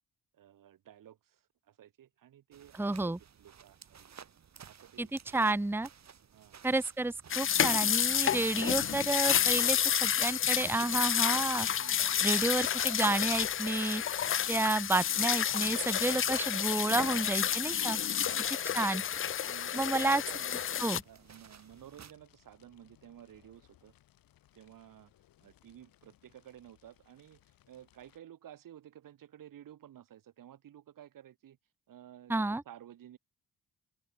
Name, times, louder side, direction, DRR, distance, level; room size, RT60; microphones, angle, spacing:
voice 1, 0.3-4.1 4.6-5.1 5.4-5.5 6.3-6.6 11.7-12.1 15.9-16.2 16.8-17.1 18.1-18.9 19.4-20.7 21.0-23.9 24.5-25.1 25.4-31.6 31.9-33.2, right 11 dB, 75° right, 2.3 m, -54 dB
sound 1, 2.5-22.1, right 7 dB, 55° right, 3.0 m, -56 dB
voice 2, 2.7-3.2 5.0-5.9 6.6-11.7 12.2-14.0 14.5-18.0 18.7-19.0 19.7-20.2 20.8-21.0 32.3-32.6, right 2 dB, 5° right, 0.9 m, -30 dB
sound 2, 7.3-21.0, left 9 dB, 40° left, 0.5 m, -30 dB
Fire, 12.0-28.2, left 13 dB, 90° left, 7.5 m, -66 dB
open air
cardioid pair, 75°, 34 cm